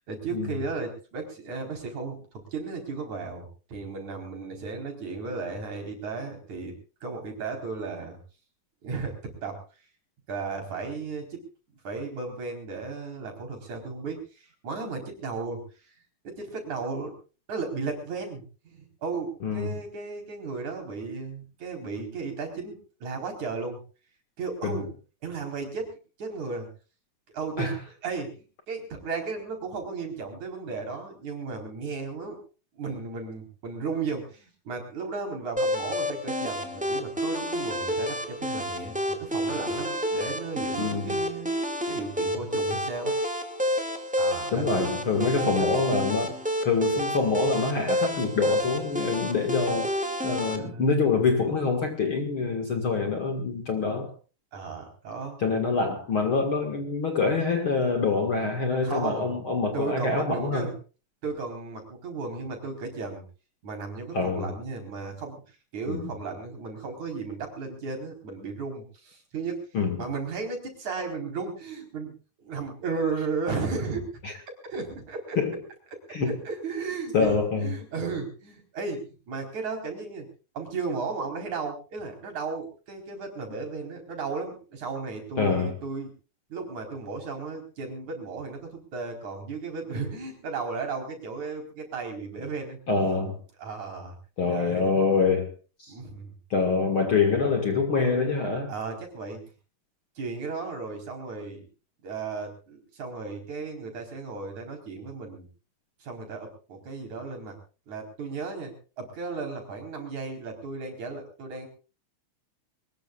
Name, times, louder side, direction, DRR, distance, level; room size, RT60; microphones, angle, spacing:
voice 1, 0.0-8.2 8.8-9.9 10.3-11.4 11.8-17.2 17.5-23.8 24.4-24.9 25.2-26.7 27.3-27.7 28.0-32.4 32.7-41.5 41.9-43.2 44.2-45.8 50.5-50.9 54.5-55.4 58.8-59.4 59.7-60.7 61.2-63.2 63.6-69.6 70.0-74.1 74.5-75.4 75.9-80.3 80.5-86.1 86.5-92.8 93.6-94.2 94.5-94.9 95.9-96.3 98.7-99.4 100.2-101.6 102.0-105.5 106.0-107.6 107.9-111.7, right 4 dB, 55° right, 3 dB, 5.7 m, -35 dB
voice 2, 19.4-19.7 24.6-24.8 27.6-27.7 40.8-41.2 44.5-46.3 46.6-49.9 50.2-54.1 55.4-60.7 64.1-64.5 65.9-66.0 69.7-70.0 74.2-74.3 75.4-75.5 76.1-76.3 77.1-77.7 85.4-85.7 92.9-93.4 94.4-95.5 95.8-95.9 96.5-98.7, left 4 dB, 45° left, 5 dB, 2.3 m, -25 dB
sound 1, 35.6-50.6, equal, 5° right, 1.2 m, -29 dB
23.5 x 20.5 x 2.5 m, 0.35 s
omnidirectional pair, 4.0 m